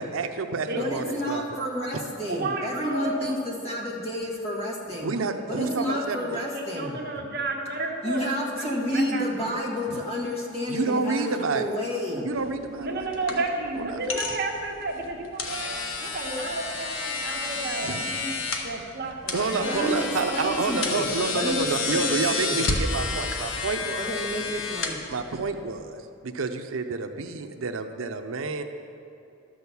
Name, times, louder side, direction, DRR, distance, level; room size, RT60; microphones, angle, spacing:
voice 1, 0.0-1.4 1.9-2.0 5.0-6.4 9.9-10.0 10.7-11.8 12.2-13.4 13.8-14.1 17.8-18.0 19.3-24.1 25.1-28.6, right 4 dB, 85° right, 6 dB, 0.6 m, -29 dB
voice 2, 0.7-5.1 5.5-7.0 8.0-12.3 19.6-21.0 21.3-22.6 24.0-25.0, left 1 dB, 30° left, -3 dB, 1.6 m, -30 dB
voice 3, 2.3-3.4 5.5-9.6 12.1-12.2 12.8-15.7 16.0-18.3 18.6-19.8, right 2 dB, 50° right, 0 dB, 1.3 m, -32 dB
sound 1, 12.3-25.6, left 3 dB, 75° left, 1.1 m, -31 dB
12.0 x 6.4 x 7.0 m, 2.6 s
head